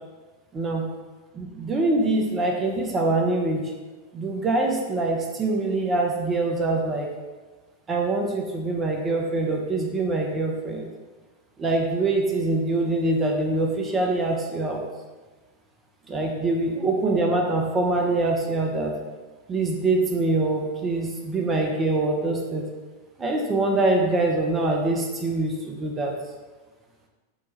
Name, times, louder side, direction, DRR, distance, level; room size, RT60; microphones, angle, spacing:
voice 1, 0.5-0.9 1.3-3.6 4.1-7.1 7.9-10.9 11.6-14.8 16.1-18.9 19.5-22.7 23.2-26.1, right 2 dB, 20° right, 1 dB, 0.5 m, -24 dB
4.5 x 2.2 x 4.1 m, 1.3 s
figure-of-eight pair, 90°, 0 cm